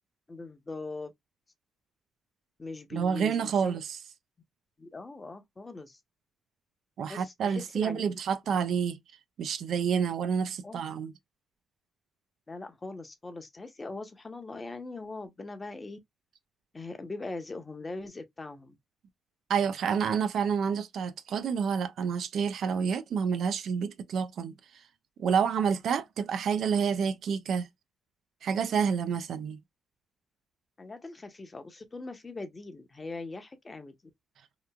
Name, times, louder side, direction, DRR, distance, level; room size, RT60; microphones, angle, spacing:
voice 1, 0.3-1.1 2.6-3.7 4.8-6.0 7.1-8.2 10.6-10.8 12.5-16.0 16.7-18.8 30.8-33.9, left 3 dB, 25° left, 0.7 m, -41 dB
voice 2, 2.9-4.0 7.0-9.0 9.4-11.1 19.5-24.5 25.2-27.7 28.4-29.6, right 6 dB, 65° right, 0.4 m, -28 dB
2.9 x 2.4 x 2.2 m
cardioid pair, 90°, 0 cm